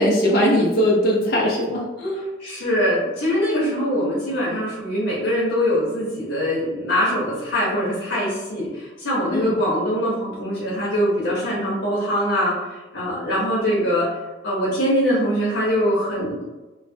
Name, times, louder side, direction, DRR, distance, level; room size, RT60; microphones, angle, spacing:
voice 1, 0.0-2.2 9.3-9.5, equal, 55° left, -4 dB, 0.5 m, -20 dB
voice 2, 2.4-12.5 12.9-14.1 14.4-16.4, equal, 85° left, -6 dB, 0.8 m, -22 dB
3.0 x 2.0 x 2.6 m, 1.1 s
head